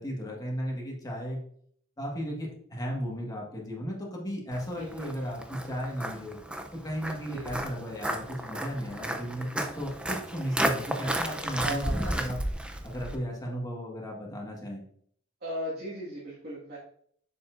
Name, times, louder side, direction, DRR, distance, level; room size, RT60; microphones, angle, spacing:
voice 1, 0.0-1.4 2.0-6.4 6.7-12.4 12.8-14.8, equal, 20° left, -2 dB, 1.6 m, -35 dB
Walk footsteps, 4.5-13.2, right 1 dB, 5° right, 0.5 m, -33 dB
voice 2, 4.8-5.1 7.3-7.5 11.6-12.1 15.4-16.8, right 1 dB, 50° right, -6 dB, 1.8 m, -37 dB
7.0 x 7.0 x 2.5 m, 0.62 s
head